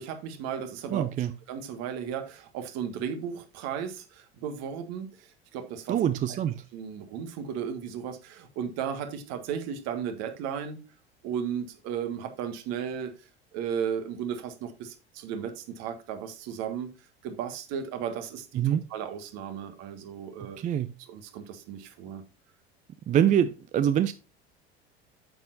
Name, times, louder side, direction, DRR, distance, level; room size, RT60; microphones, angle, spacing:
voice 1, 0.0-5.3 5.5-6.0 6.3-6.4 6.7-10.8 11.2-13.1 13.5-16.9 17.2-18.6 18.9-20.6 21.0-22.2, right 8 dB, 50° right, 1.7 m, -35 dB
voice 2, 0.9-1.3 5.9-6.6 18.6-18.8 20.6-20.9 23.1-24.1, right 10 dB, 25° right, 0.5 m, -24 dB
8.8 x 7.6 x 2.6 m
figure-of-eight pair, 70°, 33 cm